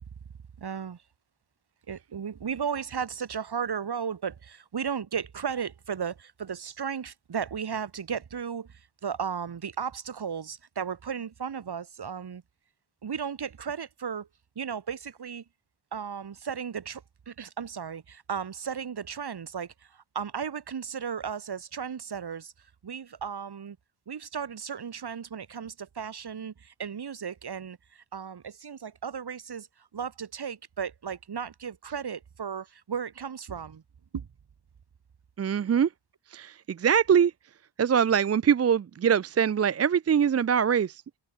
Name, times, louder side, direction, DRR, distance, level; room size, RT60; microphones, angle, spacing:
voice 1, 0.6-1.0 1.9-12.4 13.0-14.3 14.6-15.4 15.9-22.5 22.8-23.8 24.1-33.8 34.1-34.3, right 7 dB, 60° right, 4.1 m, -35 dB
voice 2, 35.4-35.9 36.3-36.5 36.8-37.3 37.8-40.9, right 7 dB, 35° right, 0.4 m, -22 dB
open air
wide cardioid pair, 160°, 44 cm